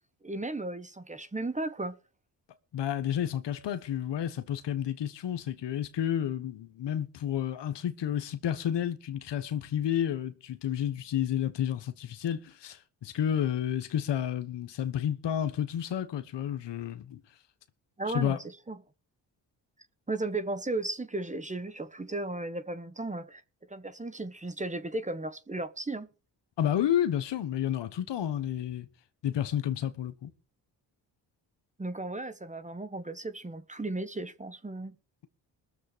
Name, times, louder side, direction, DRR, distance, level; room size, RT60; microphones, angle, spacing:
voice 1, 0.2-2.0 18.0-18.8 20.1-23.4 23.7-26.1 31.8-34.9, right 2 dB, 15° right, 1.2 m, -35 dB
voice 2, 2.7-17.2 18.1-18.4 26.6-28.9 29.2-30.3, left 10 dB, 70° left, 1.3 m, -31 dB
21.0 x 7.1 x 5.0 m
supercardioid pair, 60°, 43 cm